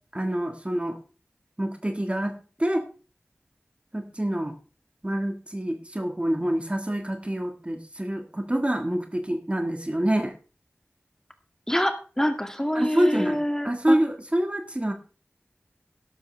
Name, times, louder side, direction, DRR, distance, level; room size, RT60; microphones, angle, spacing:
voice 1, 0.1-1.0 1.6-2.9 3.9-4.6 5.0-10.3 12.7-13.4 13.6-14.9, right 1 dB, 25° right, 6 dB, 1.6 m, -26 dB
voice 2, 11.7-14.0, equal, 10° left, 6 dB, 2.2 m, -26 dB
13.0 x 12.0 x 3.3 m, 0.36 s
wide cardioid pair, 40°, 4 cm